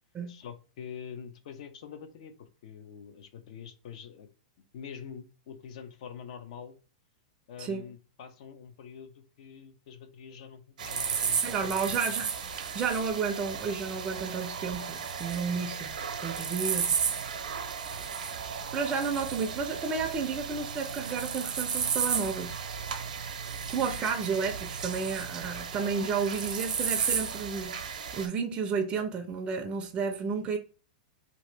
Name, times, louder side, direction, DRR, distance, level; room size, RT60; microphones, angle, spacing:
voice 1, 0.3-4.3 4.7-6.8 7.5-12.1 24.6-24.7, left 7 dB, 60° left, 0.6 m, -45 dB
sound 1, 10.8-28.3, right 6 dB, 85° right, 0.6 m, -34 dB
voice 2, 11.4-12.3 12.7-15.9 16.2-17.0 18.7-22.6 23.7-30.6, right 5 dB, 25° right, 0.4 m, -32 dB
2.8 x 2.5 x 3.2 m
hypercardioid pair, 125°, 4 cm